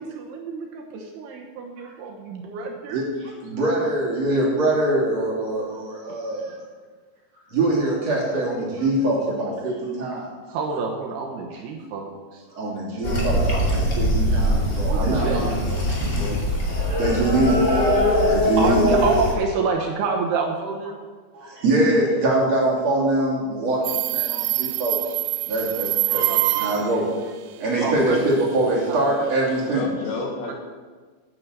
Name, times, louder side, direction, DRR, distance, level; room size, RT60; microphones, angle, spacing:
voice 1, 0.0-3.1 6.4-6.6 10.5-12.4 12.8-12.9 14.8-15.8 18.3-21.0 26.3-26.7 27.8-28.2 28.9-29.3 30.4-30.5, right 4 dB, 70° right, 1 dB, 2.9 m, -28 dB
voice 2, 3.4-6.6 7.5-10.3 12.6-15.8 17.0-18.9 21.3-25.0 25.5-27.1 27.6-29.9, right 2 dB, 40° right, -4 dB, 3.5 m, -23 dB
sound 1, 13.0-19.3, equal, 30° left, 2.3 m, -22 dB
voice 3, 15.1-15.7 16.2-16.7 17.4-17.6 29.7-30.5, left 3 dB, 70° left, 1 dB, 3.0 m, -32 dB
Subway metro underground, 23.8-27.0, right 17 dB, 90° right, 2.3 m, -24 dB
11.0 x 9.4 x 6.8 m, 1.4 s
omnidirectional pair, 5.2 m